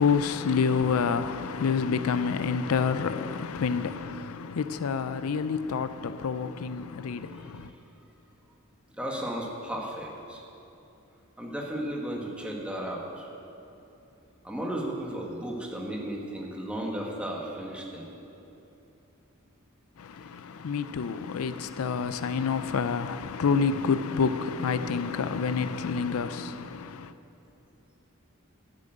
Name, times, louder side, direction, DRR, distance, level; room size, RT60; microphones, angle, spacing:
voice 1, 0.0-7.7 20.0-27.1, left 5 dB, 85° left, 0.4 m, -28 dB
voice 2, 7.3-7.7 8.9-10.4 11.4-13.3 14.4-18.1, right 1 dB, 5° right, 1.5 m, -34 dB
11.0 x 7.6 x 7.8 m
head